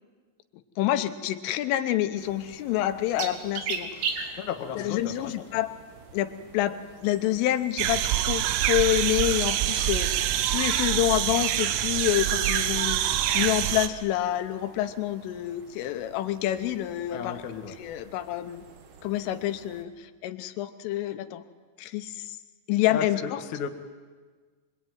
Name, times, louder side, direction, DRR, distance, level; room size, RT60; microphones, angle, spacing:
voice 1, 0.8-4.3 4.8-5.7 6.1-13.1 13.4-17.4 17.8-18.7 19.0-21.4 21.8-22.4 22.7-23.2, left 13 dB, 85° left, 10 dB, 3.5 m, -28 dB
sound 1, 2.1-19.8, right 5 dB, 60° right, 3.5 m, -42 dB
voice 2, 4.4-5.6 17.1-17.8 22.9-23.7, left 7 dB, 60° left, 3 dB, 2.1 m, -34 dB
sound 2, 7.8-13.9, right 12 dB, 85° right, 3.5 m, -25 dB
24.5 x 23.0 x 9.3 m, 1.5 s
omnidirectional pair, 5.7 m